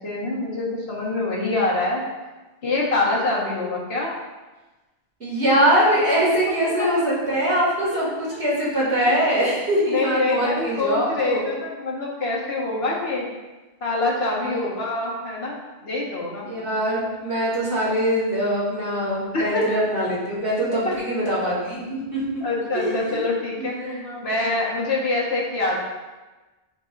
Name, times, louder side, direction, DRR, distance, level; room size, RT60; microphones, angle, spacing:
voice 1, 0.0-2.0 2.6-4.1 6.8-6.9 9.9-13.3 13.8-16.5 19.3-19.8 20.9-21.0 22.4-25.8, left 2 dB, 65° left, -4 dB, 1.8 m, -25 dB
voice 2, 5.2-11.5 14.4-14.7 16.4-22.2 22.7-23.2 23.6-24.3, equal, 75° right, -7 dB, 2.9 m, -23 dB
11.0 x 4.6 x 2.6 m, 1.2 s
omnidirectional pair, 1.1 m